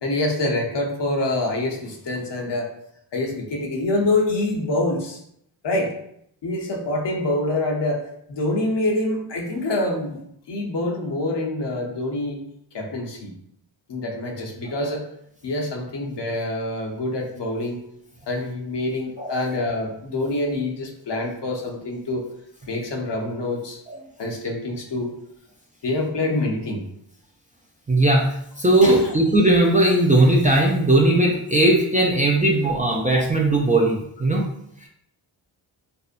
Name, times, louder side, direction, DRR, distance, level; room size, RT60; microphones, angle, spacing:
voice 1, 0.0-2.7 3.1-5.2 5.6-5.9 6.4-8.0 8.3-10.2 10.5-12.4 12.7-13.3 13.9-15.0 15.4-17.8 18.3-22.2 22.7-23.8 24.2-25.1 25.8-26.8 28.8-29.1, left 2 dB, 60° left, -1 dB, 0.8 m, -25 dB
voice 2, 27.9-34.5, right 1 dB, 15° right, -3 dB, 0.4 m, -18 dB
2.7 x 2.0 x 2.4 m, 0.73 s
cardioid pair, 40°, 49 cm